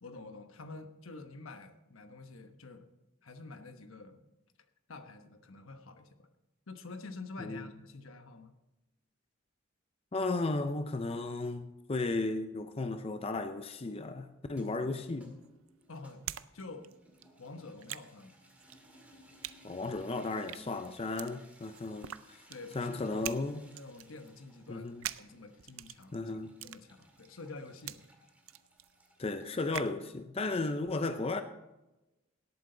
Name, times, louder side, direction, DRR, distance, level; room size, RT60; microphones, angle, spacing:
voice 1, 0.0-2.9 3.2-4.2 4.9-6.3 6.7-8.5 15.9-16.2 16.5-16.9 17.4-18.3 18.6-18.8 22.5-23.3 23.7-24.9 25.2-26.1 26.6-28.1, left 3 dB, 80° left, 7 dB, 1.1 m, -48 dB
voice 2, 10.1-15.4 19.6-22.4 22.7-23.7 24.7-25.0 26.1-26.5 29.2-31.4, left 3 dB, 30° left, 8 dB, 0.5 m, -35 dB
sound 1, 14.4-29.6, right 1 dB, 5° right, 2.0 m, -62 dB
sound 2, 15.0-16.5 16.7-30.0, right 12 dB, 75° right, 0.5 m, -45 dB
18.0 x 8.5 x 3.9 m, 1.0 s
head